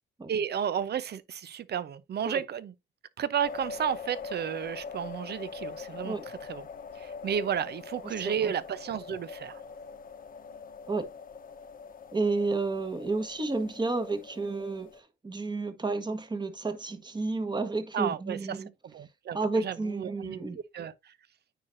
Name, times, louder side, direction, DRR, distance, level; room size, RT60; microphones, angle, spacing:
voice 1, 0.3-2.7 3.2-6.7 7.0-9.6 17.9-18.6 18.8-20.4 20.7-21.1, right 8 dB, 55° right, 0.8 m, -32 dB
sound 1, 3.4-15.0, left 5 dB, 45° left, 1.1 m, -43 dB
voice 2, 12.1-14.9 15.2-18.7 19.3-20.6, right 3 dB, 20° right, 1.5 m, -31 dB
9.2 x 5.0 x 2.7 m
cardioid pair, 90°, 20 cm